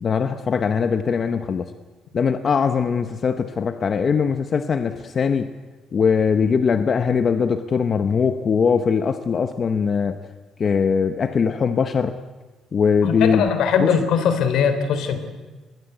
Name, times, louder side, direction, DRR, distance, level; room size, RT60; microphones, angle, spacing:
voice 1, 0.0-1.7 2.1-5.5 5.9-10.2 10.6-12.1 12.7-13.5 13.8-13.9, left 6 dB, 40° left, 9 dB, 1.0 m, -21 dB
voice 2, 13.0-15.2, left 7 dB, 75° left, 9 dB, 3.6 m, -20 dB
25.5 x 21.5 x 8.1 m, 1.2 s
cardioid pair, 140°, 0 cm